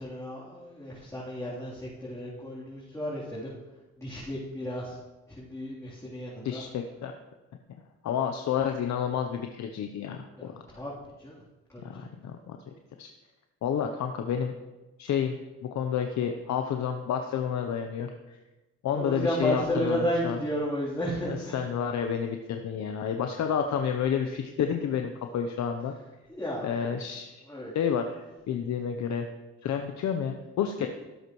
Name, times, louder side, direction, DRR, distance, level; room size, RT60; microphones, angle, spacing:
voice 1, 0.0-3.5 4.0-5.0 5.3-6.6 10.4-11.4 11.7-12.0 18.9-21.7 26.3-26.7 27.5-28.0 30.8-30.9, equal, 10° left, -9 dB, 3.5 m, -33 dB
voice 2, 6.4-7.2 8.0-10.6 11.8-12.6 13.0-13.1 13.6-14.5 15.0-18.4 18.8-20.4 21.2-25.9 26.6-27.4 27.7-29.3 29.6-30.9, left 8 dB, 65° left, 5 dB, 0.9 m, -30 dB
16.5 x 8.1 x 3.2 m, 1.1 s
cardioid pair, 90°, 30 cm